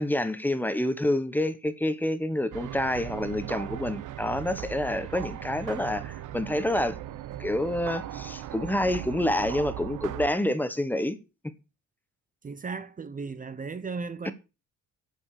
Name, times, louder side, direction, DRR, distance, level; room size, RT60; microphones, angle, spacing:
voice 1, 0.0-7.0 7.4-11.2 14.2-14.3, left 1 dB, 5° left, 1.1 m, -28 dB
sound 1, 2.5-10.3, right 12 dB, 70° right, 1.2 m, -38 dB
voice 2, 12.4-14.3, right 4 dB, 25° right, 0.9 m, -36 dB
9.2 x 7.1 x 6.8 m
cardioid pair, 135°, 32 cm